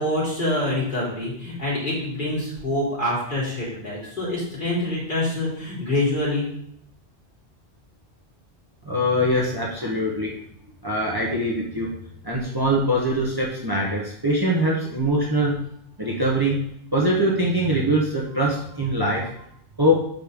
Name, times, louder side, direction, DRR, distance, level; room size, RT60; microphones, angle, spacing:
voice 1, 0.0-6.5, left 1 dB, 45° left, -8 dB, 3.8 m, -26 dB
voice 2, 8.8-10.3 10.8-11.9 12.2-15.5 16.0-16.6 16.9-19.3 19.8-20.0, equal, 20° right, -3 dB, 1.2 m, -22 dB
5.5 x 5.3 x 6.5 m, 0.70 s
omnidirectional pair, 1.2 m